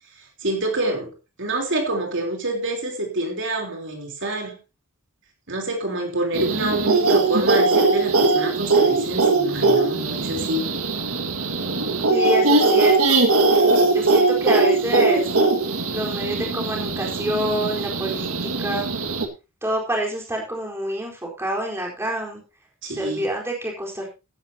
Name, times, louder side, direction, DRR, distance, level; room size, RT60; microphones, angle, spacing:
voice 1, 0.4-1.1 1.4-4.6 5.5-10.7 22.8-23.3, right 1 dB, 60° right, 2 dB, 3.5 m, -26 dB
sound 1, 6.3-19.3, right 3 dB, 75° right, 1.9 m, -20 dB
voice 2, 12.1-13.2 13.9-15.3 15.9-18.3 18.6-18.9 19.6-22.4 22.9-24.1, right 1 dB, 10° right, 0 dB, 4.2 m, -27 dB
15.0 x 11.0 x 2.8 m, 0.28 s
head